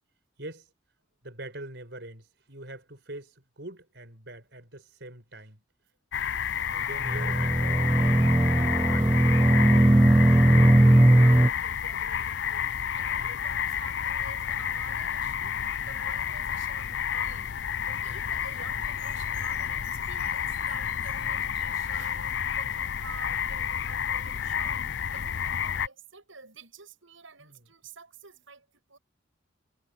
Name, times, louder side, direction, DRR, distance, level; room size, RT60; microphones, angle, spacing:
voice 1, 1.2-5.6 6.7-8.0 8.5-9.4 9.7-10.3 17.9-18.1 18.7-18.8 19.5-19.7 21.1-21.2 27.4-27.7, right 1 dB, 60° right, 6.1 m, -44 dB
sound 1, 6.1-25.9, left 8 dB, 60° left, 0.4 m, -30 dB
voice 2, 6.5-7.0 10.7-10.8 11.2-15.6 15.8-17.5 17.8-29.0, right 4 dB, 75° right, 6.8 m, -49 dB
sound 2, 7.0-11.5, right 1 dB, 10° right, 0.4 m, -19 dB
head